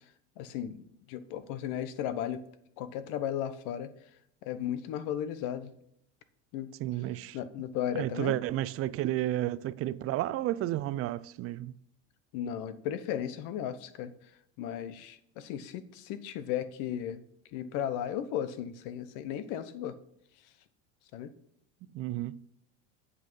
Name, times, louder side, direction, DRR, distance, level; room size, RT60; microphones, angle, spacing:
voice 1, 0.4-0.8 1.1-2.4 2.8-3.9 4.4-5.7 6.5-6.7 7.3-8.4 12.3-14.1 14.6-17.2 17.5-19.9 21.1-21.3, left 10 dB, 60° left, 1.1 m, -35 dB
voice 2, 6.8-7.4 7.9-11.7 21.9-22.4, right 14 dB, 40° right, 0.5 m, -32 dB
9.0 x 5.6 x 5.5 m
supercardioid pair, 115°, 35 cm